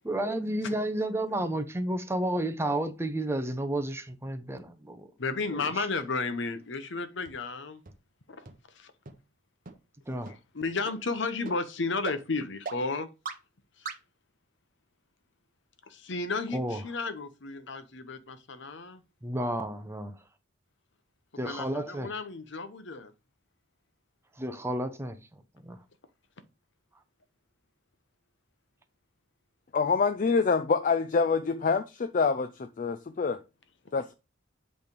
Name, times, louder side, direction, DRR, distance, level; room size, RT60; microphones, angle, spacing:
voice 1, 0.1-5.1 5.8-5.9 10.1-10.3 16.5-16.8 19.2-20.1 21.4-22.1 24.4-25.2 25.6-25.8, right 1 dB, 15° right, 0.7 m, -31 dB
voice 2, 5.2-7.8 8.4-8.5 8.7-8.9 10.3-13.1 13.8-13.9 15.9-19.0 21.3-23.1, left 3 dB, 65° left, 0.9 m, -33 dB
sound 1, 7.3-7.4 7.9-8.0 8.5-8.6 9.1-9.2 9.7-9.8 10.3-10.4 10.9-11.0 11.5-11.6 12.1-12.2 12.7-12.8 13.3-13.4 13.9-14.0, right 4 dB, 45° right, 0.9 m, -37 dB
voice 3, 29.7-33.4 33.9-34.1, left 5 dB, 40° left, 0.4 m, -26 dB
8.2 x 3.4 x 5.2 m
head